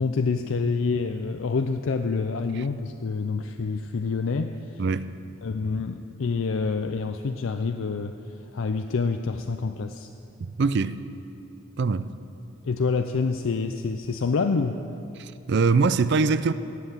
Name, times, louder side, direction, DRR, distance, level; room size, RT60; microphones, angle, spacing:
voice 1, 0.0-4.8 5.4-8.2 8.5-10.1 12.6-14.8, left 4 dB, 65° left, 0.5 m, -27 dB
voice 2, 4.8-5.1 10.4-11.0 11.8-12.1 15.2-16.5, right 4 dB, 50° right, 0.4 m, -23 dB
18.0 x 7.9 x 7.2 m
head